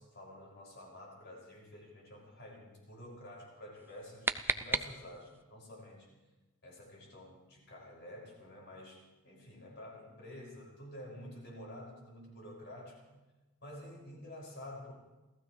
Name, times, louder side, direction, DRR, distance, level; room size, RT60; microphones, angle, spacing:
voice 1, 0.0-6.2 6.6-13.2 13.6-14.9, left 1 dB, 50° left, -2 dB, 6.3 m, -50 dB
sound 1, 3.8-5.4, right 3 dB, 10° right, 0.4 m, -36 dB
28.5 x 15.5 x 3.3 m, 1.1 s
head